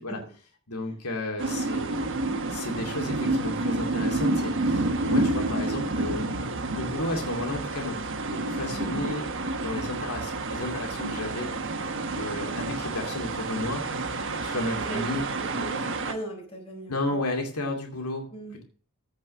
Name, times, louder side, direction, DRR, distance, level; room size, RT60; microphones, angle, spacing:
voice 1, 0.7-2.1 2.5-8.1 8.4-11.5 12.2-13.8 14.3-15.3 16.9-18.3, left 2 dB, 90° left, 2 dB, 2.5 m, -33 dB
sound 1, 1.4-16.1, right 2 dB, 60° right, 1.4 m, -29 dB
voice 2, 12.4-12.8 14.7-15.2 15.5-17.2 18.3-18.6, right 2 dB, 25° left, 0 dB, 5.2 m, -39 dB
15.0 x 5.3 x 6.4 m, 0.42 s
head